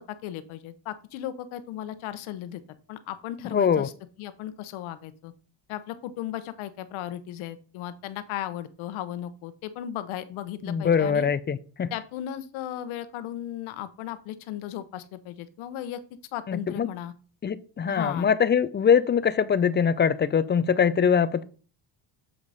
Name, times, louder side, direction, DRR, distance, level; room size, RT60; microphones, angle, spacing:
voice 1, 0.0-2.6 2.9-3.9 4.2-5.3 5.7-11.3 11.9-16.0 16.3-17.1 17.9-18.3, left 12 dB, 90° left, 0.9 m, -36 dB
voice 2, 3.5-3.9 10.6-11.9 16.5-16.9 17.4-21.4, left 7 dB, 25° left, 0.3 m, -23 dB
7.3 x 4.8 x 4.0 m
cardioid pair, 105°, 47 cm